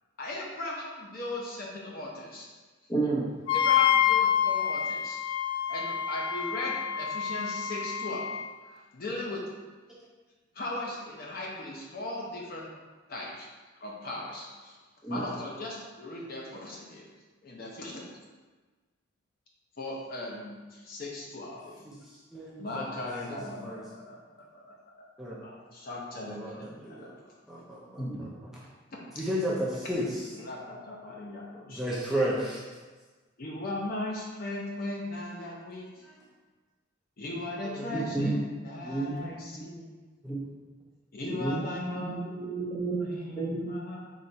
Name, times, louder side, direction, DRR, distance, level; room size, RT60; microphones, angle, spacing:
voice 1, 0.2-2.5 3.5-5.2 5.7-9.4 10.5-12.7 13.1-13.5 13.8-14.8 15.1-17.1 17.4-18.0 19.8-21.8 22.6-25.1 25.4-27.4 30.3-31.8 33.4-36.0 37.2-39.8 41.1-42.2 43.1-44.0, left 2 dB, 50° left, -3 dB, 0.6 m, -38 dB
voice 2, 2.9-3.3 15.0-15.2 28.0-28.3 37.9-38.4 38.8-39.3 40.3-40.4 41.3-43.7, right 3 dB, 20° left, -6 dB, 0.9 m, -32 dB
Wind instrument woodwind instrument, 3.5-8.4, left 9 dB, 90° left, 0.4 m, -27 dB
voice 3, 22.3-23.8 25.2-25.3 26.3-27.1 27.5-28.5 29.2-30.2 31.7-32.6 37.7-38.3 40.2-40.4, right 1 dB, ahead, -7 dB, 0.5 m, -33 dB
3.9 x 2.4 x 4.3 m, 1.3 s
head